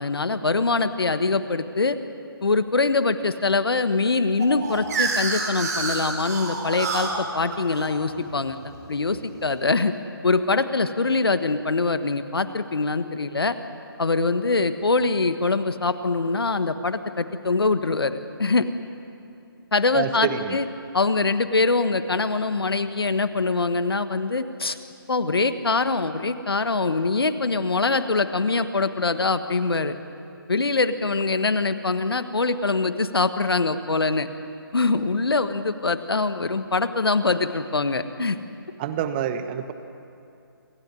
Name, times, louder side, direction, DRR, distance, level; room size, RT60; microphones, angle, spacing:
voice 1, 0.0-2.0 2.4-9.9 10.2-13.6 14.0-18.7 19.7-20.7 20.9-24.8 25.1-30.0 30.5-34.3 34.7-38.4, left 3 dB, 75° left, 11 dB, 1.4 m, -23 dB
sound 1, 4.4-9.2, right 3 dB, 45° right, 4.6 m, -29 dB
voice 2, 19.9-20.6 38.8-39.7, right 9 dB, 25° right, 10 dB, 1.1 m, -27 dB
27.0 x 16.0 x 9.7 m, 2.6 s
figure-of-eight pair, 145°, 13 cm